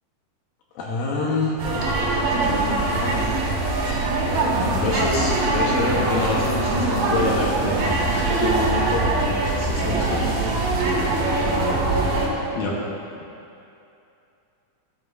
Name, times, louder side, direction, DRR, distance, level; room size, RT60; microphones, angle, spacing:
voice 1, 0.8-1.6 2.4-3.3 4.6-7.7 8.1-10.2 12.6-12.8, left 3 dB, 75° left, -3 dB, 2.2 m, -27 dB
sound 1, 1.6-12.3, right 2 dB, 70° right, 2.8 m, -22 dB
voice 2, 9.9-11.5, right 8 dB, 85° right, 2 dB, 2.7 m, -37 dB
13.0 x 7.8 x 2.4 m, 2.7 s
omnidirectional pair, 4.7 m